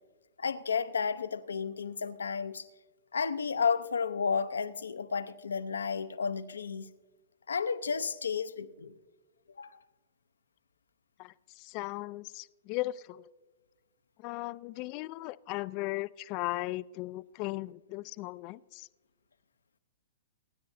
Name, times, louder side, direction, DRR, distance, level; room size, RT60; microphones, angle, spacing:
voice 1, 0.4-2.7 3.1-6.9 7.5-8.9 9.6-9.8, left 5 dB, 90° left, 0.6 m, -32 dB
voice 2, 11.2-13.3 14.2-18.9, left 19 dB, 40° left, 0.3 m, -37 dB
23.5 x 9.5 x 2.6 m
hypercardioid pair, 120°, 0 cm